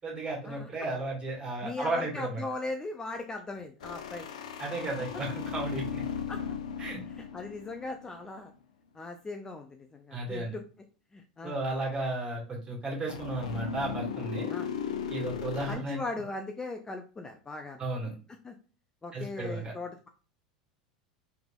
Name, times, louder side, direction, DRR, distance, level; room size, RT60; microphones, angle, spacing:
voice 1, 0.0-2.4 4.6-6.0 6.8-7.0 10.1-10.6 11.4-14.5 15.1-16.2 17.8-18.1 19.1-19.7, right 2 dB, 25° right, -1 dB, 1.7 m, -34 dB
voice 2, 1.6-4.3 6.3-6.4 7.1-8.5 8.9-10.6 11.1-11.6 14.5-14.7 15.7-17.8 18.4-18.5 19.0-20.1, left 3 dB, 20° left, 5 dB, 0.4 m, -39 dB
sound 1, 3.8-8.4 13.1-15.8, left 7 dB, 75° left, 0.5 m, -37 dB
3.4 x 3.4 x 2.3 m, 0.37 s
hypercardioid pair, 85°, 4 cm